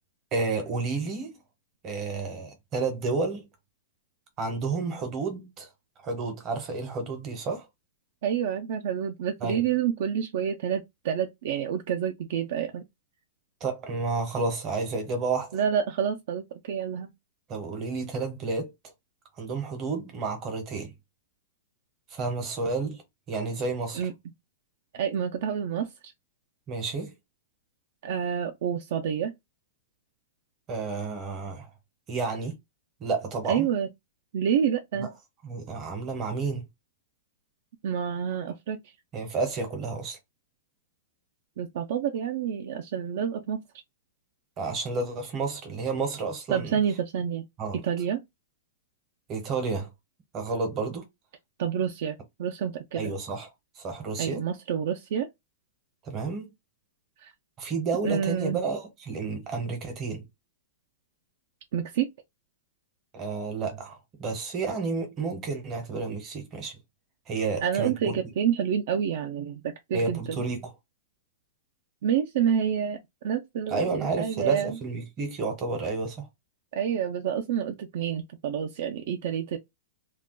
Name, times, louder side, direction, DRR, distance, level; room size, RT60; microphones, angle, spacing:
voice 1, 0.3-1.4 1.8-3.5 4.4-5.7 6.0-7.6 9.4-9.6 13.6-15.6 17.5-18.7 19.4-20.9 22.1-23.0 23.3-24.1 26.7-27.1 30.7-31.7 32.1-32.5 33.0-33.7 35.0-35.1 35.4-36.6 39.1-40.2 44.6-46.7 47.6-47.8 49.3-49.9 50.3-51.0 53.0-53.5 53.8-54.4 56.0-56.5 57.6-60.2 63.1-66.8 67.3-68.1 69.9-70.7 73.7-76.3, right 4 dB, 20° right, 0.8 m, -31 dB
voice 2, 8.2-12.8 15.5-17.1 23.9-24.1 24.9-26.1 28.0-29.3 33.5-33.9 34.3-35.1 37.8-38.8 41.6-43.6 46.5-47.5 47.7-48.2 51.6-53.1 54.2-55.3 57.2-57.3 58.0-58.6 61.7-62.1 67.6-70.4 72.0-73.0 73.2-74.8 76.7-79.6, right 8 dB, 45° right, 0.4 m, -28 dB
2.3 x 2.2 x 3.6 m
supercardioid pair, 180°, 0 cm